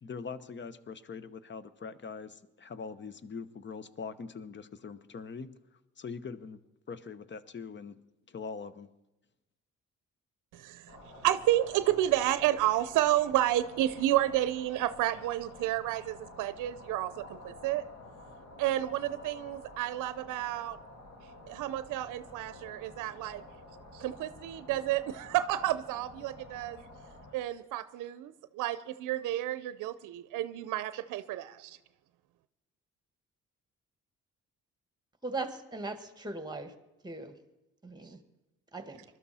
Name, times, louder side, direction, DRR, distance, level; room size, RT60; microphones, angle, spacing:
voice 1, 0.0-5.5 6.0-6.6 6.9-8.0 8.3-8.9, left 5 dB, 40° left, 14 dB, 1.0 m, -42 dB
voice 2, 10.5-17.8 18.6-20.8 21.5-23.4 23.9-26.8 27.3-31.8, right 13 dB, 90° right, 13 dB, 0.6 m, -31 dB
sound 1, 10.9-27.3, left 2 dB, 60° left, 3.0 m, -50 dB
voice 3, 35.2-36.7 37.0-37.3 37.8-38.2 38.7-39.0, right 3 dB, 15° right, 8 dB, 1.7 m, -39 dB
21.5 x 12.5 x 4.2 m, 0.99 s
cardioid pair, 90°, 30 cm